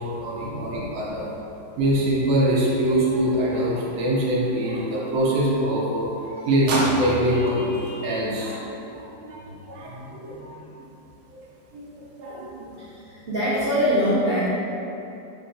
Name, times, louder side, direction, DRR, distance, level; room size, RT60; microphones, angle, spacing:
voice 1, 0.0-1.3 1.8-8.6 8.9-10.4 11.3-11.4 11.7-12.7, right 1 dB, 80° right, -6 dB, 1.4 m, -24 dB
voice 2, 9.8-10.9 13.1-14.5, equal, 60° right, -12 dB, 0.5 m, -24 dB
3.8 x 2.3 x 3.7 m, 2.9 s
omnidirectional pair, 1.9 m